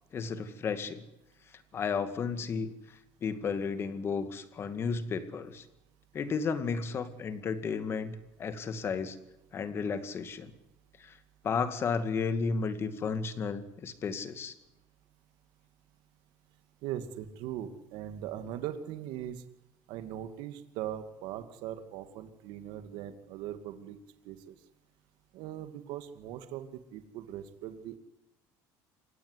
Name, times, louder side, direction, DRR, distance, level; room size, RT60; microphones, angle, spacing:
voice 1, 0.1-1.0 1.7-2.7 3.2-5.7 6.1-9.2 9.5-10.5 11.0-11.2 11.4-14.5, left 5 dB, 30° left, 11 dB, 2.2 m, -33 dB
voice 2, 16.8-19.4 19.9-24.0 24.2-24.5 25.3-28.0, right 11 dB, 65° right, 9 dB, 2.4 m, -40 dB
27.0 x 16.5 x 9.8 m, 0.95 s
cardioid pair, 155°, 8 cm